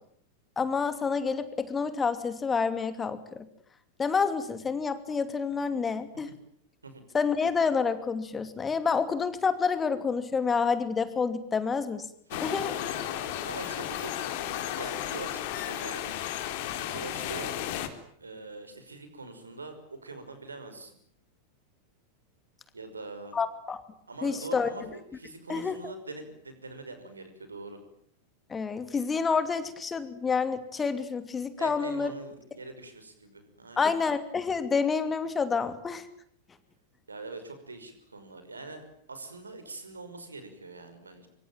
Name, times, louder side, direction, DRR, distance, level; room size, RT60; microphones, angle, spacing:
voice 1, 0.6-3.5 4.0-6.3 7.1-12.0 12.4-12.8 23.3-23.8 24.2-24.7 25.5-25.9 28.5-32.1 33.8-36.1, left 5 dB, 15° left, 11 dB, 2.8 m, -28 dB
sound 1, 12.3-17.9, left 11 dB, 50° left, 3.5 m, -34 dB
voice 2, 13.2-16.1 16.8-17.5 18.2-21.0 22.7-23.4 24.1-27.8 31.6-33.9 37.1-41.3, right 3 dB, 75° right, 9 dB, 5.8 m, -43 dB
25.5 x 25.0 x 9.1 m, 0.64 s
figure-of-eight pair, 90°, 0 cm